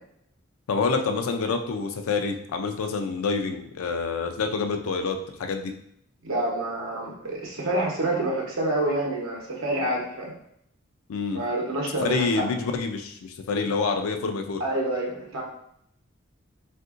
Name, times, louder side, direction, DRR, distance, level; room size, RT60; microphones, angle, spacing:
voice 1, 0.7-5.7 11.1-11.4 12.0-14.6, left 4 dB, 85° left, 5 dB, 0.4 m, -27 dB
voice 2, 6.2-10.3 11.3-12.4 14.6-15.4, right 1 dB, 75° right, -2 dB, 0.9 m, -27 dB
3.6 x 2.6 x 2.4 m, 0.72 s
head